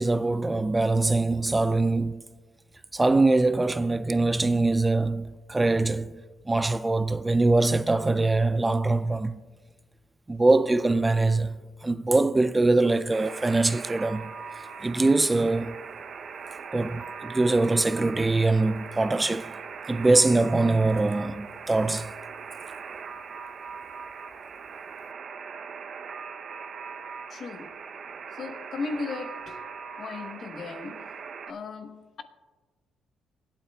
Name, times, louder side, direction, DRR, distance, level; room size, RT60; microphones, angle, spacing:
voice 1, 0.0-2.2 2.9-6.2 6.5-9.4 10.3-14.3 14.8-15.8 16.7-19.5 19.9-22.3, right 2 dB, 15° right, 0.3 m, -23 dB
Alarm, 13.1-31.5, right 6 dB, 55° right, 0.6 m, -40 dB
voice 2, 27.3-27.8 28.3-29.6 30.0-31.2 31.5-32.2, left 4 dB, 55° left, 0.9 m, -36 dB
24.5 x 8.6 x 2.3 m
cardioid pair, 90°, 0 cm